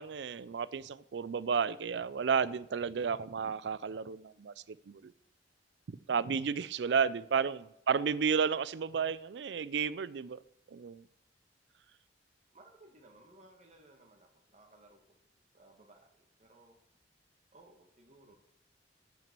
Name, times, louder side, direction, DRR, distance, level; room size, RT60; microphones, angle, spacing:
voice 1, 0.0-5.1 5.9-10.4 10.7-11.0, right 6 dB, 70° right, 0.4 m, -32 dB
voice 2, 6.8-7.2 12.5-15.2 15.5-16.8 17.5-18.3, right 2 dB, 40° right, 1.6 m, -60 dB
9.1 x 9.0 x 6.8 m
head